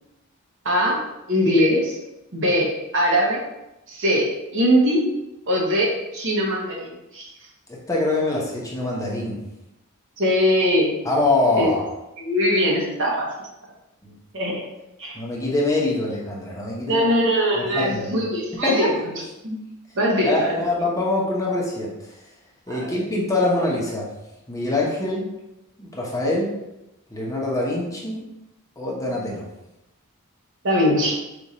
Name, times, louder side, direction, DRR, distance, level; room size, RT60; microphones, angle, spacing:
voice 1, 0.6-1.0 1.3-2.0 2.3-3.4 3.9-5.1 5.5-7.2 10.2-10.9 11.6-11.7 12.2-13.3 14.3-14.6 15.0-15.2 16.9-19.6 19.9-20.6 22.7-22.9 30.6-31.2, equal, 60° right, -3 dB, 1.2 m, -21 dB
voice 2, 7.7-9.4 11.0-11.8 14.0-14.1 15.1-17.1 17.5-18.1 18.6-18.9 20.2-21.9 22.7-24.1 24.5-25.3 25.8-26.5 27.1-28.2 28.8-29.4, left 2 dB, 15° left, -4 dB, 0.9 m, -24 dB
4.9 x 2.5 x 4.2 m, 0.93 s
head